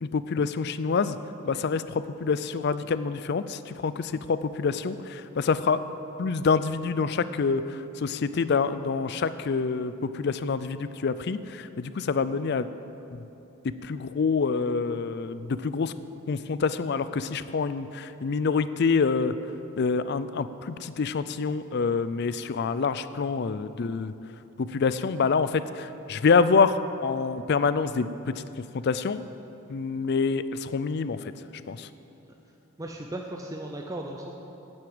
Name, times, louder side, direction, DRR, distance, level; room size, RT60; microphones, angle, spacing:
voice 1, 0.0-1.2 1.4-5.8 6.2-12.7 13.1-13.2 13.6-15.9 16.3-19.3 19.8-24.1 24.6-28.1 28.6-29.2 29.7-31.3 31.7-31.9, left 5 dB, 50° left, 13 dB, 0.4 m, -26 dB
voice 2, 32.8-34.3, right 1 dB, 15° right, 1 dB, 0.5 m, -36 dB
9.4 x 8.0 x 8.6 m, 2.9 s
head